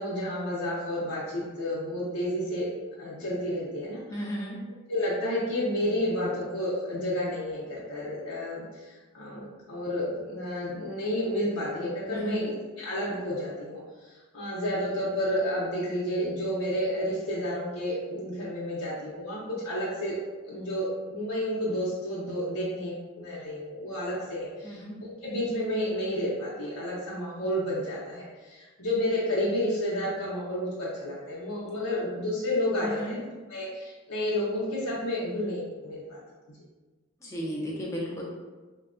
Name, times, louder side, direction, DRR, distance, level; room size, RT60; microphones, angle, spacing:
voice 1, 0.0-2.7 3.0-4.0 4.9-13.8 14.1-20.2 20.4-36.2, left 1 dB, 85° left, -7 dB, 0.8 m, -31 dB
voice 2, 4.1-4.6 12.1-12.4 24.6-24.9 32.8-33.2 37.2-38.2, equal, 15° left, -4 dB, 0.5 m, -34 dB
4.5 x 2.2 x 2.5 m, 1.3 s
head